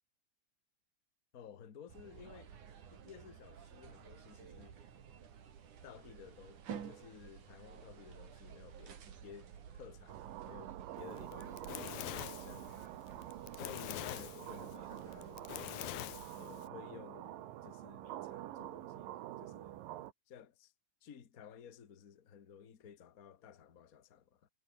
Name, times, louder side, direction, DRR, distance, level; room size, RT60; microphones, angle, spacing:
voice 1, 1.3-2.6 2.9-4.8 5.8-9.5 9.7-12.7 13.5-15.6 16.4-19.8 20.3-20.7 21.0-24.5, left 8 dB, 55° left, 0.9 m, -55 dB
sound 1, 1.9-16.4, right 8 dB, 55° right, 3.9 m, -53 dB
sound 2, 10.1-20.1, right 14 dB, 75° right, 2.8 m, -47 dB
Fire, 11.2-16.7, left 16 dB, 75° left, 2.7 m, -45 dB
omnidirectional pair, 4.3 m